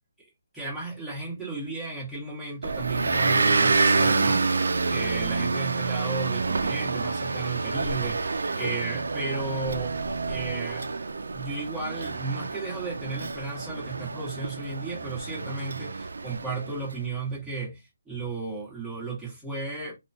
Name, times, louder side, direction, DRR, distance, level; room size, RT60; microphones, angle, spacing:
voice 1, 0.5-10.0 10.3-10.9 11.3-20.0, right 3 dB, ahead, 1.5 m, -34 dB
Motor vehicle (road) / Engine, 2.6-16.8, right 4 dB, 75° right, 0.4 m, -27 dB
2.9 x 2.3 x 2.7 m
hypercardioid pair, 160°, 0 cm